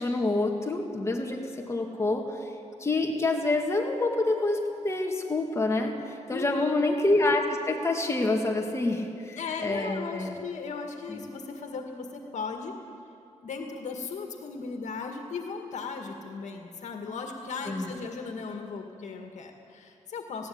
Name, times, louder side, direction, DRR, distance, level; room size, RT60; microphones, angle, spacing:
voice 1, 0.0-2.5 2.8-10.4 11.1-11.2 17.7-17.9, left 2 dB, 20° left, 1 dB, 2.0 m, -27 dB
voice 2, 6.3-6.7 9.4-12.8 13.4-20.5, left 5 dB, 70° left, 3 dB, 1.9 m, -37 dB
20.0 x 17.0 x 8.8 m, 2.7 s
wide cardioid pair, 170°, 13 cm